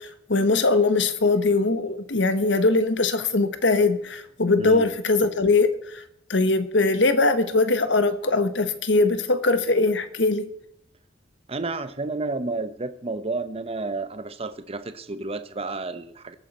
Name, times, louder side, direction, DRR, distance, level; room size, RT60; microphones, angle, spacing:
voice 1, 0.3-5.7 6.3-10.5, left 3 dB, 70° left, 11 dB, 1.4 m, -21 dB
voice 2, 4.6-4.9 11.5-16.3, right 3 dB, 30° right, 11 dB, 0.8 m, -31 dB
22.0 x 9.1 x 4.3 m, 0.76 s
head